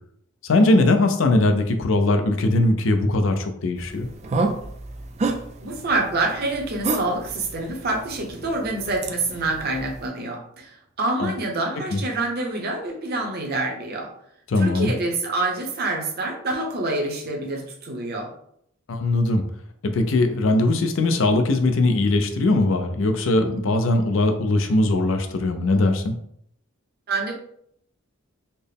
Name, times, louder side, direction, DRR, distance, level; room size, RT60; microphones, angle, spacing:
voice 1, 0.4-4.1 11.2-11.3 11.9-12.0 14.5-14.9 18.9-19.4 19.9-26.1, left 2 dB, 70° left, 6 dB, 0.5 m, -20 dB
sound 1, 3.8-10.1, right 3 dB, 35° right, 0.3 m, -31 dB
voice 2, 5.6-14.1 14.6-18.3 27.1-27.3, right 2 dB, 50° right, 1 dB, 0.8 m, -26 dB
4.2 x 2.1 x 3.4 m, 0.70 s
head